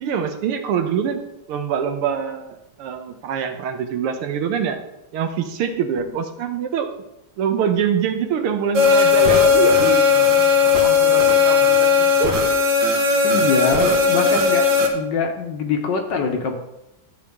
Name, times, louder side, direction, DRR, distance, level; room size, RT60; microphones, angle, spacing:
voice 1, 0.0-1.2 1.5-4.8 5.1-6.9 7.4-10.1 10.6-12.5 13.3-13.4, right 7 dB, 80° right, 7 dB, 1.8 m, -24 dB
sound 1, 8.7-14.9, left 5 dB, 60° right, 2.0 m, -16 dB
voice 2, 13.2-14.7 14.9-16.5, left 5 dB, 60° left, 4 dB, 1.5 m, -23 dB
12.0 x 7.0 x 3.6 m, 0.89 s
omnidirectional pair, 2.4 m